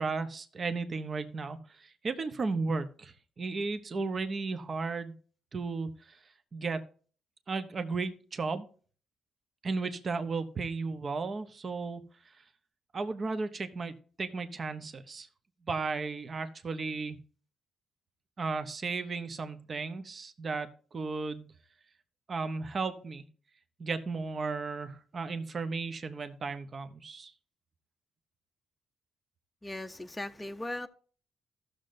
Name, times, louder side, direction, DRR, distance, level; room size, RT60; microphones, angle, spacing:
voice 1, 0.0-5.1 5.5-6.2 6.5-6.8 7.5-8.7 9.6-12.0 12.9-15.3 15.7-17.2 18.4-21.5 22.3-23.3 23.8-27.3, right 4 dB, 40° right, 0.8 m, -34 dB
voice 2, 29.6-30.9, left 1 dB, 10° left, 0.6 m, -38 dB
14.5 x 6.5 x 2.6 m
cardioid pair, 90°, 0 cm